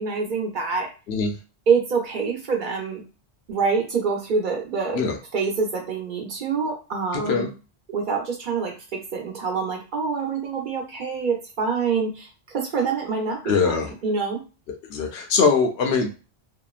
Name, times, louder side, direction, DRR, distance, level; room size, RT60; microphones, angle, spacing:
voice 1, 0.0-0.9 1.7-3.0 3.5-5.0 5.3-7.5 7.9-12.3 12.5-14.4, right 5 dB, 50° right, 1 dB, 0.9 m, -26 dB
voice 2, 13.4-13.9 14.7-16.1, left 5 dB, 75° left, 3 dB, 0.9 m, -22 dB
2.8 x 2.1 x 2.4 m, 0.32 s
omnidirectional pair, 1.1 m